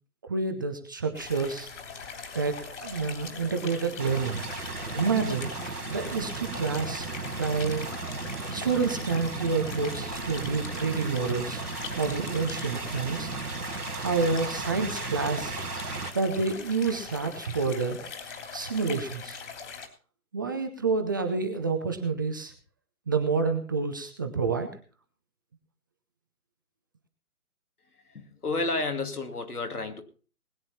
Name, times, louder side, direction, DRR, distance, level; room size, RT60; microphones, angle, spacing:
voice 1, 0.3-1.7 2.3-4.4 4.9-7.1 7.4-7.9 8.5-11.6 11.9-13.3 14.0-15.5 16.1-18.1 18.5-19.4 20.3-22.5 23.1-24.7, right 4 dB, 15° right, 5 dB, 0.6 m, -28 dB
sound 1, 1.1-19.9, left 5 dB, 50° left, 3.2 m, -41 dB
sound 2, 4.0-16.1, right 4 dB, 90° right, 2.5 m, -35 dB
voice 2, 28.1-30.0, left 3 dB, 85° left, 5 dB, 2.6 m, -31 dB
20.0 x 9.3 x 4.2 m, 0.39 s
figure-of-eight pair, 145°, 44 cm